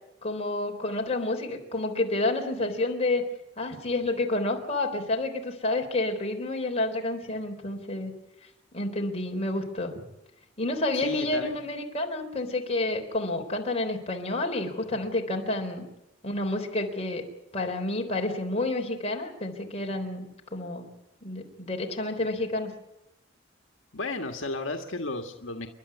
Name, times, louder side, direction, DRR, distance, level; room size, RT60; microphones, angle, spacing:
voice 1, 0.2-3.2 3.6-8.1 8.7-10.0 10.6-15.8 16.2-17.3 17.5-20.9 21.2-22.7, left 2 dB, 30° left, 2 dB, 3.8 m, -29 dB
voice 2, 10.9-11.5 23.9-25.7, left 2 dB, 75° left, 4 dB, 1.7 m, -33 dB
29.5 x 11.5 x 9.8 m, 0.92 s
head